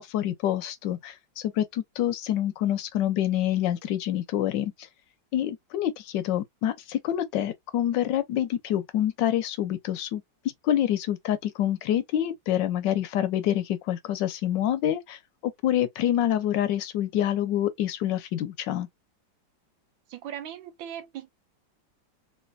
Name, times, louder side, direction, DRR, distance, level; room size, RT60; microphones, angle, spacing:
voice 1, 0.0-4.7 5.3-10.2 10.6-18.9, left 11 dB, 75° left, 1.3 m, -27 dB
voice 2, 20.1-21.3, right 10 dB, 85° right, 1.6 m, -38 dB
3.2 x 2.8 x 2.5 m
omnidirectional pair, 2.0 m